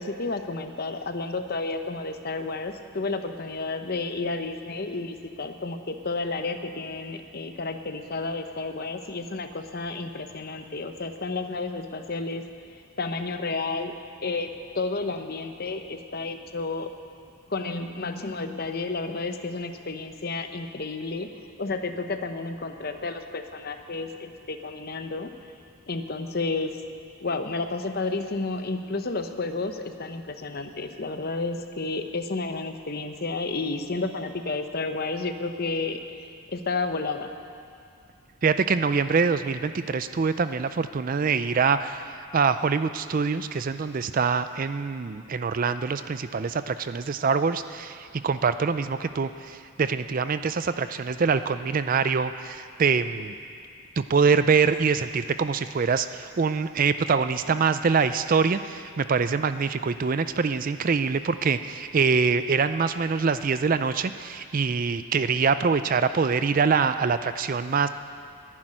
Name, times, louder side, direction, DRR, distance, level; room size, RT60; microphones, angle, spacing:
voice 1, 0.0-12.5 13.0-16.9 17.5-21.3 21.6-25.3 25.9-26.7 27.2-37.3, left 3 dB, 45° left, 7 dB, 0.8 m, -31 dB
voice 2, 38.4-53.3 54.0-67.9, right 5 dB, 40° right, 12 dB, 0.4 m, -24 dB
11.0 x 10.5 x 10.0 m, 2.4 s
head